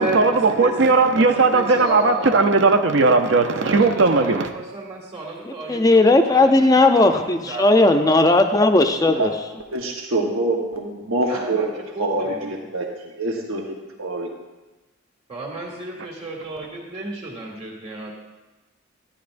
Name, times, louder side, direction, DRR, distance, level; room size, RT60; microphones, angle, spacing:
voice 1, 0.0-4.5, right 3 dB, 55° right, 5 dB, 0.5 m, -17 dB
voice 2, 1.4-2.5 3.4-8.0 11.2-11.7 11.9-12.7 15.3-18.1, right 2 dB, 30° right, -1 dB, 1.9 m, -33 dB
voice 3, 5.4-9.3, left 2 dB, 15° left, 6 dB, 0.5 m, -16 dB
voice 4, 9.7-11.7 12.0-12.9 13.2-13.6 14.0-14.3, right 2 dB, 70° right, 0 dB, 1.1 m, -25 dB
12.5 x 10.0 x 2.5 m, 1.2 s
head